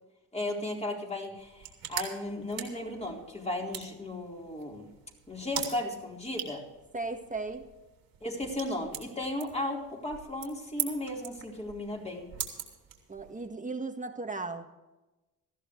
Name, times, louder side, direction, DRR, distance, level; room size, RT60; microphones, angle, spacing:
voice 1, 0.3-4.9 5.3-6.6 8.2-12.3, left 1 dB, 20° left, -1 dB, 4.2 m, -35 dB
sound 1, 1.4-13.5, right 9 dB, 90° right, 3.1 m, -42 dB
voice 2, 6.9-7.6 13.1-14.7, right 3 dB, 20° right, 5 dB, 1.6 m, -36 dB
18.5 x 14.0 x 3.2 m, 1.1 s
cardioid pair, 95°, 34 cm